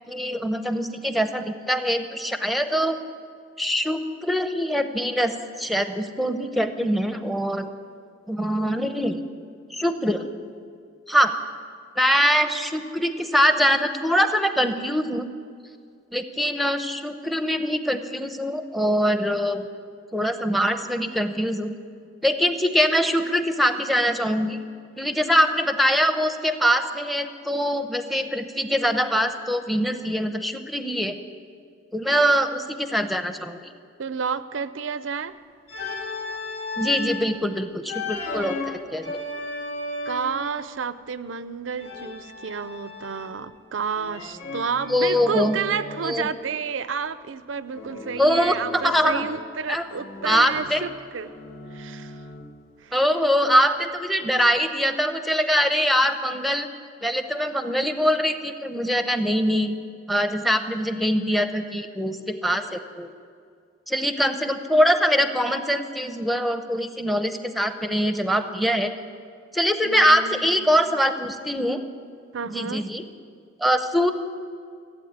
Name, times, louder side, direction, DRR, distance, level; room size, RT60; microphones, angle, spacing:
voice 1, 0.1-3.0 3.6-7.7 8.3-9.2 9.7-10.3 11.1-11.4 12.0-15.2 16.1-19.7 20.1-21.7 22.2-24.6 25.0-31.2 31.9-33.6 36.8-39.2 44.9-45.6 46.0-46.3 48.2-49.3 49.7-49.9 50.2-50.8 52.9-56.7 57.0-59.7 60.1-63.1 63.9-68.9 69.5-71.8 72.5-73.0 73.6-74.1, equal, ahead, 8 dB, 0.7 m, -23 dB
voice 2, 34.0-35.4 40.1-51.4 51.7-52.2 52.8-53.0 69.8-70.9 72.3-72.8, right 6 dB, 85° right, 14 dB, 0.6 m, -31 dB
Organ, 35.7-37.3 37.9-40.5 41.8-43.5 43.9-46.2 47.7-49.5 49.9-52.6, left 2 dB, 70° left, 2.2 m, -35 dB
15.0 x 8.5 x 9.5 m, 2.2 s
head